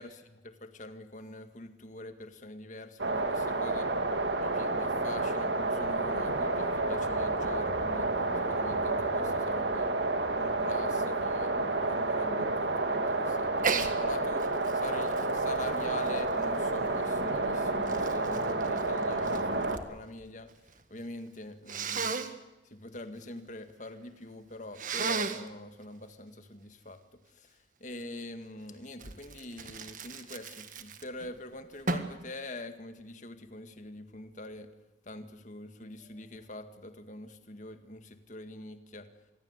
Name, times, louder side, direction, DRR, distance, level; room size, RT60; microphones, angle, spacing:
voice 1, 0.0-3.9 4.4-8.1 8.5-9.9 10.4-14.5 14.7-20.5 20.9-22.2 22.7-27.0 27.4-27.5 27.8-34.7 35.1-39.1, left 1 dB, 40° left, 8 dB, 1.9 m, -44 dB
sound 1, 3.0-19.8, right 2 dB, 75° right, 2.2 m, -30 dB
Sneeze, 13.6-13.9 14.4-16.7 17.4-19.9 20.2-20.8 21.7-22.3 24.7-25.5 29.0-31.3 31.9-32.2, right 4 dB, 45° right, 1.7 m, -35 dB
27.0 x 21.0 x 8.2 m, 1.0 s
head